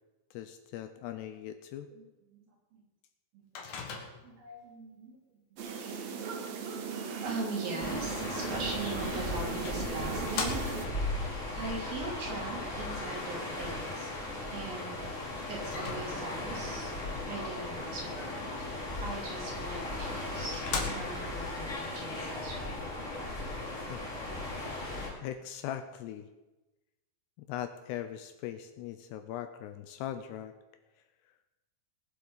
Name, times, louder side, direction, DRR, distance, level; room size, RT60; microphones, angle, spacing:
voice 1, 0.3-1.9 6.5-6.6 23.9-24.0 25.2-26.3 27.4-30.5, left 11 dB, 80° left, 8 dB, 2.6 m, -40 dB
Microwave oven, 3.6-4.5 8.8-8.9 9.7-11.0 15.6-16.5 19.7-19.8 20.2-20.3 20.5-21.4, left 5 dB, 55° left, 2.7 m, -38 dB
voice 2, 4.2-5.2 7.2-11.0 11.5-14.1 14.5-15.1 15.5-16.9 17.3-22.9, right 3 dB, 55° right, -2 dB, 4.7 m, -41 dB
sound 1, 5.6-10.9, right 5 dB, 75° right, 1.6 m, -38 dB
sound 2, 7.8-25.1, left 2 dB, 20° left, 3.3 m, -37 dB
21.0 x 7.7 x 5.6 m, 1.1 s
omnidirectional pair, 5.2 m